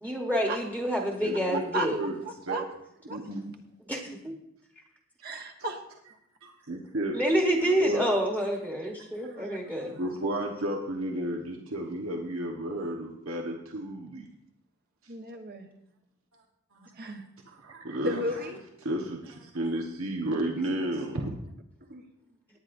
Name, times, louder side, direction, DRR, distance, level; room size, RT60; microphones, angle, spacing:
voice 1, 0.0-2.0 3.9-4.1 7.1-9.9, equal, 10° right, 0 dB, 1.2 m, -27 dB
voice 2, 1.2-2.2 2.5-2.6 3.1-3.4 6.4-7.2 7.6-8.1 9.2-9.4 9.9-14.3 16.7-16.9 17.5-18.4 18.8-21.3, right 1 dB, 85° right, 0 dB, 1.3 m, -33 dB
voice 3, 5.2-5.8 9.2-9.6 15.1-15.7 17.0-17.2 18.0-18.6 21.9-22.0, equal, 50° right, 5 dB, 1.2 m, -33 dB
18.5 x 9.5 x 2.6 m, 0.80 s
head